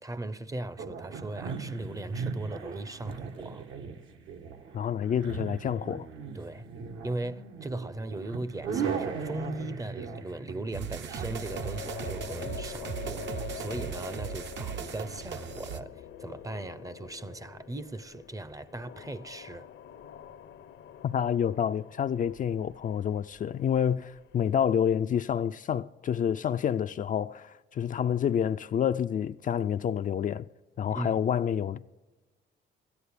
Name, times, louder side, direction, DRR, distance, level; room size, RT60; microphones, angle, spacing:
voice 1, 0.0-3.7 6.3-6.7 7.0-19.7 30.9-31.2, right 2 dB, 15° right, 0.5 m, -38 dB
sound 1, 0.8-13.5, right 6 dB, 80° right, 1.3 m, -38 dB
voice 2, 4.7-6.1 21.0-30.5 30.8-31.9, left 8 dB, 40° left, 0.4 m, -28 dB
sound 2, 10.7-15.8, right 8 dB, 65° right, 0.8 m, -38 dB
sound 3, 11.0-24.6, left 9 dB, 75° left, 0.9 m, -45 dB
13.0 x 9.6 x 8.5 m
cardioid pair, 90°, 20 cm